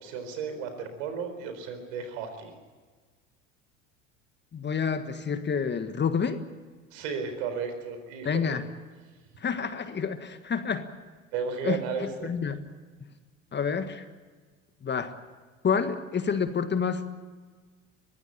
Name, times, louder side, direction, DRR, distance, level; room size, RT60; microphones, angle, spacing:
voice 1, 0.0-2.5 6.9-8.6 11.3-12.3, right 6 dB, 70° right, 8 dB, 4.3 m, -34 dB
voice 2, 4.5-6.4 8.2-8.6 9.4-10.9 11.6-11.8 12.2-12.6 13.0-13.1 13.5-14.0 14.8-15.1 15.6-17.1, left 6 dB, 30° left, 10 dB, 1.6 m, -28 dB
23.0 x 15.0 x 8.9 m, 1.4 s
hypercardioid pair, 75°, 38 cm